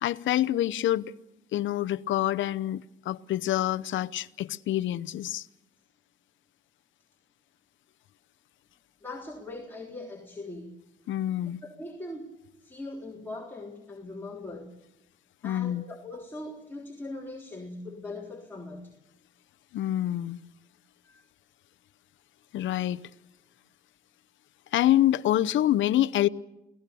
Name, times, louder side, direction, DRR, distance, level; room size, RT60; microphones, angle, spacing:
voice 1, 0.0-1.1 1.5-5.5 11.1-11.6 15.4-15.8 19.7-20.4 22.5-23.0 24.7-26.3, left 13 dB, 75° left, 0.8 m, -26 dB
voice 2, 9.0-10.8 11.6-12.3 12.6-14.8 15.4-19.0 21.0-21.3, left 2 dB, 10° left, 3.6 m, -41 dB
28.5 x 18.0 x 7.0 m
cardioid pair, 90°, 20 cm